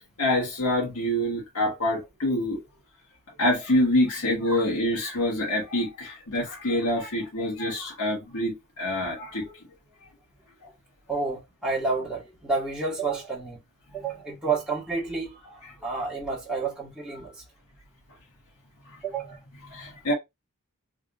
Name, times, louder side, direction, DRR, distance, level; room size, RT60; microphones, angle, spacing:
voice 1, 0.2-2.6 3.4-9.5 19.7-20.1, left 1 dB, 75° left, 1.5 m, -26 dB
voice 2, 11.1-13.6 13.9-17.3 19.0-19.4, right 4 dB, 5° right, 1.1 m, -30 dB
3.4 x 2.6 x 2.6 m
head